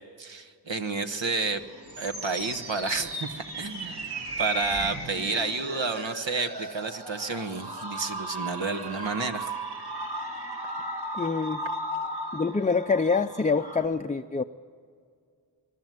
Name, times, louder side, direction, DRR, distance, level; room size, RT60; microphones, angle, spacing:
voice 1, 0.2-1.6 2.0-9.5, right 3 dB, 80° right, 1.3 m, -30 dB
sound 1, 1.5-13.9, right 1 dB, 60° right, 2.2 m, -36 dB
voice 2, 11.1-11.6 12.3-14.4, left 4 dB, 20° left, 0.4 m, -26 dB
22.0 x 12.5 x 9.3 m
wide cardioid pair, 75°, 44 cm